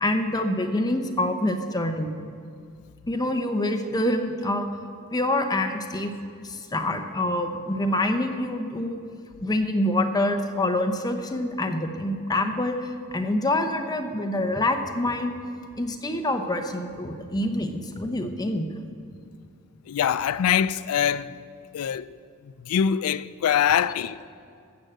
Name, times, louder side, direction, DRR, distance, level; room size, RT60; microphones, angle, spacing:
voice 1, 0.0-2.1 3.1-4.7 5.1-6.1 6.4-9.0 9.4-15.3 15.8-18.7, left 1 dB, 20° left, 0.8 m, -26 dB
voice 2, 19.9-21.4 21.7-22.1 22.7-24.3, left 8 dB, 70° left, 0.3 m, -23 dB
15.5 x 6.3 x 7.7 m
head